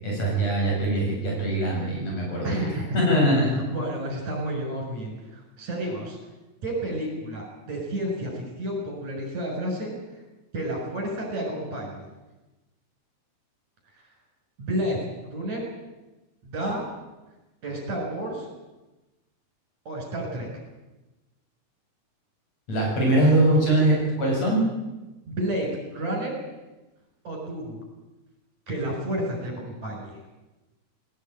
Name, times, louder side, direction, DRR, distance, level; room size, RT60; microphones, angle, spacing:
voice 1, 0.0-2.6 2.9-3.6 22.7-24.6, right 1 dB, 60° left, -2 dB, 9.1 m, -22 dB
voice 2, 2.4-3.0 3.5-6.2 6.6-9.9 10.5-12.1 14.6-15.0 15.3-15.6 16.4-16.8 17.6-18.5 19.9-20.5 25.3-26.3 27.2-27.8 28.7-30.2, right 1 dB, 65° right, 1 dB, 7.6 m, -30 dB
19.5 x 19.0 x 9.1 m, 1.1 s
omnidirectional pair, 3.5 m